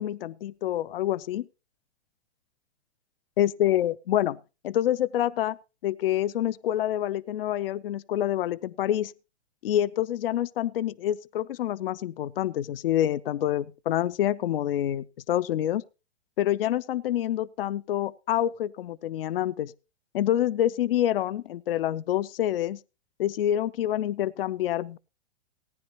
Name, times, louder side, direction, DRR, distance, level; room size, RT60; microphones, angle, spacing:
voice 1, 0.0-1.5 3.4-4.4 4.6-5.6 5.8-9.1 9.6-15.8 16.4-19.7 20.1-22.8 23.2-25.0, left 12 dB, 55° left, 0.5 m, -27 dB
18.0 x 10.0 x 2.8 m
figure-of-eight pair, 105°, 33 cm